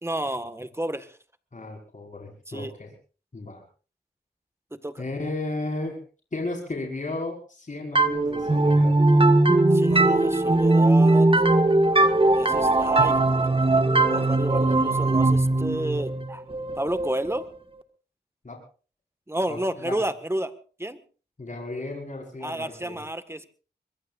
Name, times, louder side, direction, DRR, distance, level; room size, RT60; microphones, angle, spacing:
voice 1, 0.0-1.1 2.5-2.7 4.7-5.0 9.7-11.3 12.3-13.2 13.4-13.8 14.1-16.4 16.8-17.4 19.3-20.5 20.8-21.0 22.4-23.5, right 1 dB, 15° right, 10 dB, 1.7 m, -31 dB
voice 2, 1.5-2.9 3.3-3.6 5.0-6.0 6.3-8.9 18.4-18.6 19.5-20.0 21.4-23.0, left 2 dB, 50° left, 0 dB, 5.4 m, -34 dB
sound 1, 8.0-17.5, right 2 dB, 30° right, 1.8 m, -20 dB
24.5 x 22.0 x 2.6 m, 0.38 s
cardioid pair, 60°, 17 cm